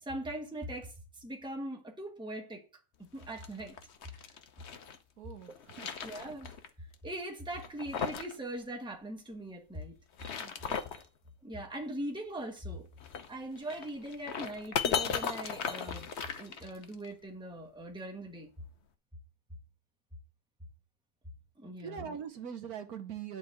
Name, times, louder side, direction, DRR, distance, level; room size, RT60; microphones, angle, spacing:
voice 1, 0.0-2.6 3.0-3.8 4.1-4.2 6.0-6.5 7.0-10.0 10.7-11.0 11.4-12.9 13.3-16.1 16.4-18.5 21.6-22.2, right 1 dB, 5° right, 1.2 m, -41 dB
sound 1, 3.2-5.0 5.4-6.7 6.9-7.0 7.5-8.4 8.6-8.7 10.0-11.1 13.0-17.1, left 7 dB, 50° left, 1.0 m, -37 dB
voice 2, 5.2-5.9 10.4-10.9 21.8-23.4, right 8 dB, 70° right, 1.5 m, -43 dB
10.5 x 4.2 x 7.5 m
omnidirectional pair, 1.6 m